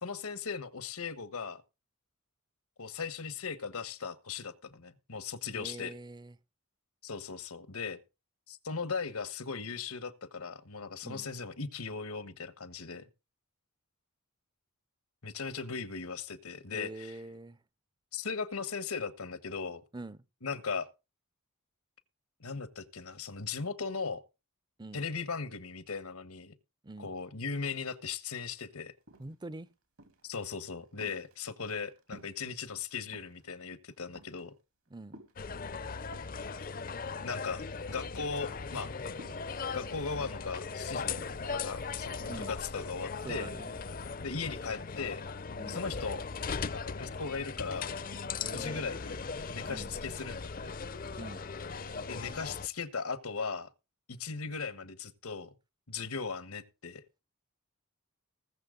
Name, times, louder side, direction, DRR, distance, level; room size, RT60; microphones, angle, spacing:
voice 1, 0.0-1.6 2.8-5.9 7.0-8.0 8.5-13.1 15.2-17.2 18.1-19.8 20.4-20.9 22.4-24.2 24.9-26.5 27.0-28.9 30.2-34.5 37.2-38.9 39.7-41.2 41.5-43.5 44.2-45.2 45.7-46.2 46.7-47.9 48.5-50.7 52.1-53.7 54.1-55.5 55.9-57.0, left 5 dB, 85° left, 1.4 m, -38 dB
voice 2, 5.6-6.4 11.0-11.3 16.7-17.6 19.9-20.2 24.8-25.0 26.8-27.1 29.2-29.7 34.9-35.2 42.3-42.6 43.2-43.8 45.6-45.8 48.4-48.9 49.6-49.9 51.2-51.4, right 2 dB, 20° right, 0.5 m, -44 dB
sound 1, 28.6-28.7 28.9-29.6 30.0-30.4 30.7-32.5 32.8-33.5 33.9-34.5 35.1-36.4 37.1-37.9 38.1-38.4 39.2-39.6 40.2-41.6 42.2-42.6, right 1 dB, 80° right, 3.1 m, -54 dB
sound 2, 35.4-52.7, left 5 dB, 40° left, 0.6 m, -39 dB
20.0 x 7.2 x 3.8 m
head